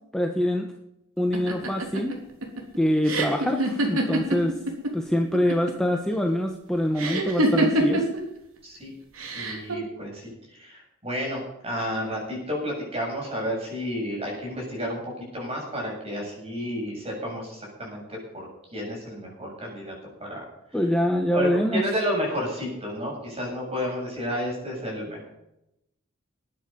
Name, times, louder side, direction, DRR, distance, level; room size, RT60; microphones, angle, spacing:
voice 1, 0.1-0.7 1.2-2.2 2.8-4.6 4.9-8.1 20.7-21.8, equal, 5° left, 2 dB, 1.0 m, -24 dB
sound 1, 1.3-4.9 5.2-5.9 7.0-8.2 9.2-9.7, right 1 dB, 75° right, 3.0 m, -25 dB
voice 2, 8.6-8.9 9.3-19.9 20.2-20.4 21.3-25.3, equal, 30° right, -1 dB, 7.2 m, -31 dB
20.0 x 9.6 x 5.3 m, 0.85 s
head